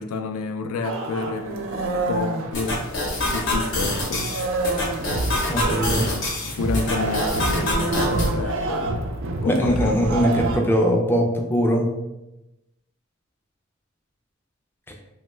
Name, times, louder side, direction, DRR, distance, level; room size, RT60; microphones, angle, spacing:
voice 1, 0.0-1.7 2.1-2.9 3.3-4.3 6.5-9.1 9.4-9.9, left 3 dB, 85° left, 0.3 m, -29 dB
sound 1, 0.8-3.4 3.7-10.6, right 2 dB, 65° right, 0.3 m, -27 dB
sound 2, 2.5-8.3, left 1 dB, 55° left, 0.8 m, -26 dB
voice 2, 5.5-6.1 9.4-11.8, equal, 10° left, 0.3 m, -21 dB
2.9 x 2.2 x 3.1 m
head